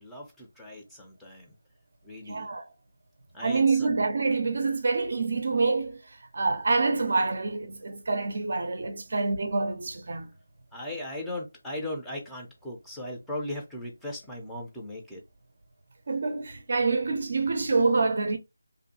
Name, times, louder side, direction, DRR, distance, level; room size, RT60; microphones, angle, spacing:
voice 1, 0.0-1.5 2.0-2.5 3.3-3.9 9.1-9.2 10.7-15.2, left 1 dB, 5° left, 0.5 m, -38 dB
voice 2, 2.3-2.6 3.4-6.0 6.3-10.3 16.1-18.4, right 3 dB, 50° right, 0.5 m, -26 dB
2.6 x 2.2 x 2.7 m
figure-of-eight pair, 165°, 0 cm